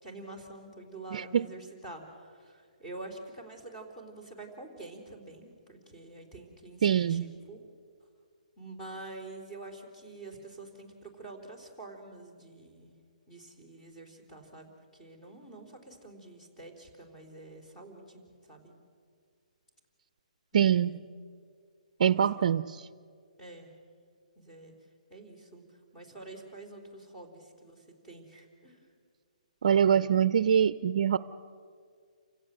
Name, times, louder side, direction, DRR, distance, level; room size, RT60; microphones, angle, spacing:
voice 1, 0.0-7.6 8.6-12.9 13.3-18.2 18.5-18.7 20.5-21.0 22.1-22.5 23.4-23.7 24.4-24.7 25.1-25.6 25.9-28.8, right 2 dB, 10° left, 0 dB, 3.6 m, -47 dB
voice 2, 1.1-1.4 6.8-7.2 20.5-21.0 22.0-22.8 29.6-31.2, right 8 dB, 50° right, 14 dB, 0.5 m, -24 dB
29.0 x 16.5 x 7.7 m, 2.1 s
hypercardioid pair, 170°, 4 cm